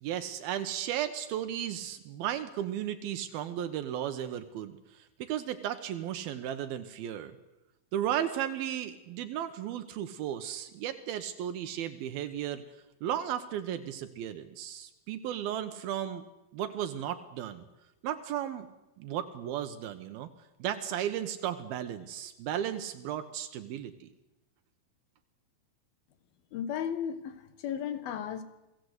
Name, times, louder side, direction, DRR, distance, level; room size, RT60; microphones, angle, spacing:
voice 1, 0.0-7.4 7.9-12.6 13.0-16.2 16.5-17.7 18.0-18.7 19.0-20.3 20.6-24.1, right 10 dB, 85° right, 8 dB, 3.0 m, -35 dB
voice 2, 26.5-28.4, left 8 dB, 85° left, 11 dB, 3.4 m, -35 dB
28.0 x 18.5 x 8.1 m, 0.98 s
omnidirectional pair, 4.2 m